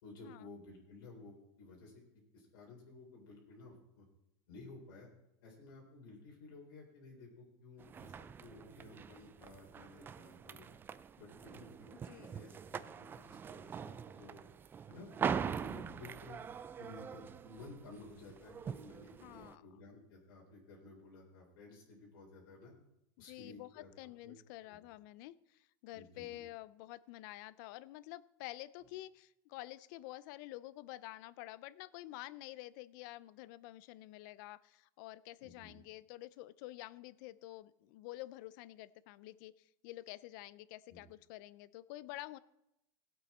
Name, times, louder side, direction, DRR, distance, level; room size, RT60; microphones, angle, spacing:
voice 1, 0.0-2.0 2.3-4.1 4.5-5.1 5.4-10.7 11.2-11.9 12.2-14.4 14.9-16.4 16.8-22.7 23.2-23.9 24.2-24.3 24.7-24.8 25.9-26.4 35.4-35.7 40.9-41.0, left 3 dB, 90° left, -3 dB, 3.8 m, -54 dB
sound 1, 7.8-19.5, right 7 dB, 20° right, 0.4 m, -43 dB
voice 2, 11.9-12.3 19.2-19.6 23.2-42.4, left 17 dB, 65° left, 18 dB, 0.5 m, -49 dB
17.5 x 8.2 x 4.3 m, 0.86 s
supercardioid pair, 140°, 11 cm